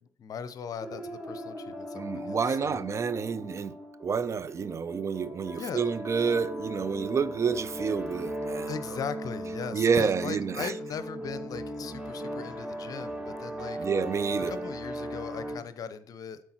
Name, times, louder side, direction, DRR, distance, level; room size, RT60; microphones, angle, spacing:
voice 1, 0.0-2.8 5.5-5.8 8.7-13.8 14.5-16.4, left 6 dB, 55° left, 0.7 m, -39 dB
sound 1, 0.8-15.6, equal, 15° right, 1.7 m, -38 dB
voice 2, 2.0-8.7 9.7-10.7 13.8-14.5, right 6 dB, 40° right, 0.5 m, -29 dB
12.5 x 4.6 x 3.0 m
hypercardioid pair, 50°, 8 cm